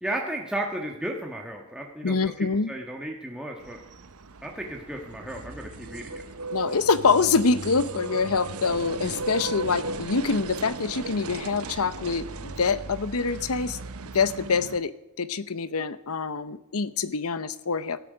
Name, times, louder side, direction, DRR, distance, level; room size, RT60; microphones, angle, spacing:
voice 1, 0.0-3.8 4.4-6.2, right 1 dB, 5° right, 0 dB, 1.4 m, -34 dB
voice 2, 2.0-2.7 6.5-13.8 14.1-14.9 15.2-18.0, left 4 dB, 75° left, 15 dB, 0.8 m, -25 dB
sound 1, 3.6-14.8, right 3 dB, 75° right, 0.9 m, -37 dB
17.0 x 13.0 x 5.1 m, 0.91 s
head